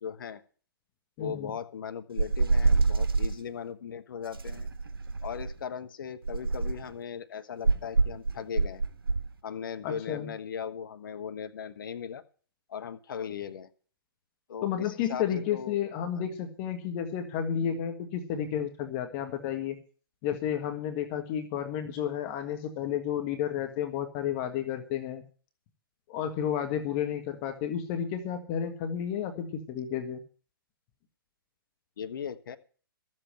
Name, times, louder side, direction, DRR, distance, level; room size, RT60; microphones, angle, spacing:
voice 1, 0.0-0.4 1.2-4.7 5.2-8.8 9.4-12.2 12.7-13.7 14.5-15.3 15.5-15.8 16.2-16.3 21.1-21.2 32.0-32.6, left 7 dB, 60° left, 10 dB, 1.2 m, -38 dB
voice 2, 1.2-1.5 9.8-10.3 14.6-19.8 20.2-25.2 26.1-30.2, left 9 dB, 35° left, 6 dB, 1.6 m, -32 dB
sound 1, 2.2-3.4 4.3-5.6 6.2-6.9 7.6-9.3, right 3 dB, 70° right, 1.6 m, -26 dB
13.5 x 7.7 x 7.7 m, 0.41 s
figure-of-eight pair, 125°, 12 cm